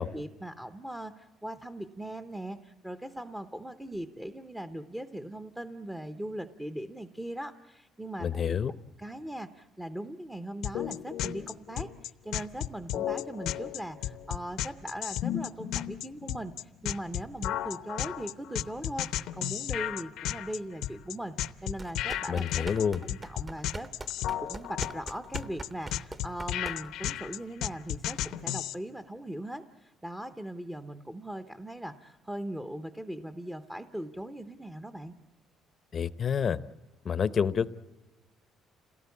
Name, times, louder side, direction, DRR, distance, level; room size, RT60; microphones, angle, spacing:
voice 1, 0.1-8.6 9.0-23.9 24.4-35.2, right 1 dB, 5° right, 9 dB, 0.8 m, -40 dB
voice 2, 8.2-8.7 22.3-23.0 35.9-36.6 37.0-37.7, left 7 dB, 40° left, 17 dB, 0.7 m, -28 dB
sound 1, 10.6-28.7, left 12 dB, 75° left, 0.8 m, -34 dB
sound 2, 21.7-27.1, right 2 dB, 25° right, 1.1 m, -42 dB
27.5 x 18.0 x 8.4 m, 1.1 s
cardioid pair, 125°, 0 cm